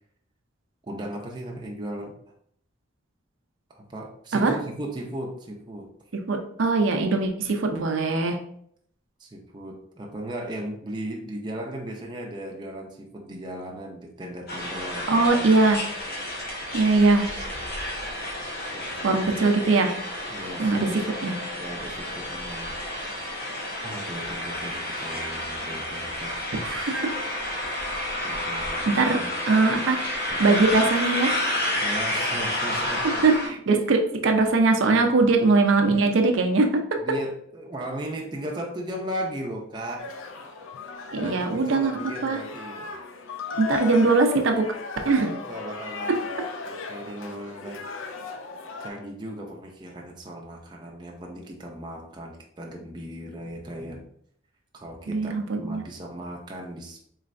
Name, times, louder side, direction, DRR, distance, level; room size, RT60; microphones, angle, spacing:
voice 1, 0.8-2.2 3.7-5.9 9.2-15.5 18.7-19.2 20.3-21.1 21.6-22.7 23.2-23.3 23.8-26.4 28.2-29.3 30.3-30.6 31.8-33.3 34.9-35.1 37.0-40.1 41.2-42.9 45.5-47.8 48.8-54.1 54.7-57.1, right 1 dB, 20° right, 0 dB, 0.5 m, -37 dB
voice 2, 6.3-8.4 15.1-15.8 16.7-17.3 19.0-19.9 20.6-20.9 21.2-21.3 26.5-27.1 28.8-29.2 29.5-30.0 30.4-31.4 33.0-36.7 41.1-41.9 42.2-42.4 43.6-44.7 45.0-45.4 55.1-55.8, right 3 dB, 75° right, 4 dB, 0.5 m, -21 dB
sound 1, 14.5-33.5, left 1 dB, 50° left, 1.0 m, -30 dB
sound 2, 40.0-48.9, left 5 dB, 80° left, 0.4 m, -36 dB
3.8 x 3.2 x 2.5 m, 0.67 s
head